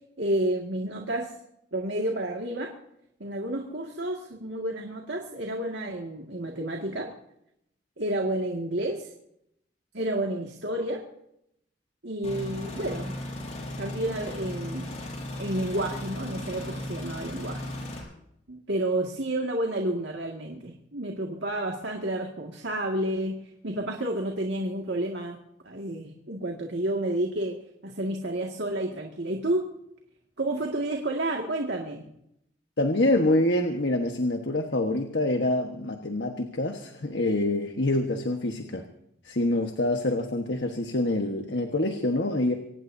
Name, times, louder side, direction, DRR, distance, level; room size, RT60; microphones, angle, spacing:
voice 1, 0.2-1.3 1.7-2.7 3.2-7.1 8.0-9.1 9.9-11.1 12.0-13.1 13.8-14.9 15.4-17.6 18.5-23.4 23.6-25.4 25.6-27.6 27.8-29.7 30.4-32.1, right 1 dB, 70° right, 1 dB, 2.1 m, -30 dB
sound 1, 12.2-18.0, left 1 dB, 40° left, 6.0 m, -36 dB
voice 2, 32.8-38.8 39.2-42.5, left 1 dB, 65° left, 3 dB, 1.4 m, -26 dB
24.5 x 19.0 x 2.8 m, 0.76 s
head